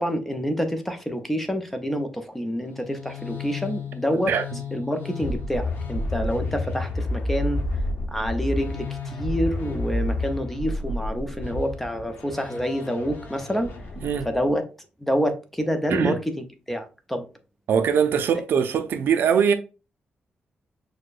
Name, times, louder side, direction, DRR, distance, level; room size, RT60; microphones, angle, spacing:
voice 1, 0.0-4.3 4.7-7.6 8.1-13.7 14.3-14.6 15.0-16.2 16.7-17.3, equal, 5° left, 0.5 m, -27 dB
sound 1, 2.6-14.5, left 2 dB, 70° left, 0.9 m, -30 dB
voice 2, 17.7-19.5, right 7 dB, 75° right, 0.5 m, -21 dB
6.4 x 2.2 x 2.4 m
wide cardioid pair, 155°, 4 cm